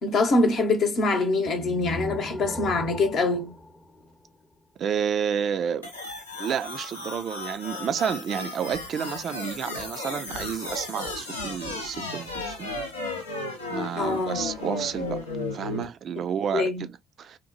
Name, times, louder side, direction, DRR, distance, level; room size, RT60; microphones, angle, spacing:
voice 1, 0.0-3.5 14.0-14.4 16.5-16.8, left 3 dB, 55° left, 0.8 m, -24 dB
sound 1, 1.5-4.6, equal, 20° left, 0.7 m, -38 dB
voice 2, 4.8-5.9 6.4-12.8 13.7-15.2 15.5-17.4, right 8 dB, 50° right, 0.3 m, -30 dB
sound 2, 5.8-15.8, left 2 dB, 90° left, 0.5 m, -34 dB
2.9 x 2.1 x 2.5 m
figure-of-eight pair, 50°, 0 cm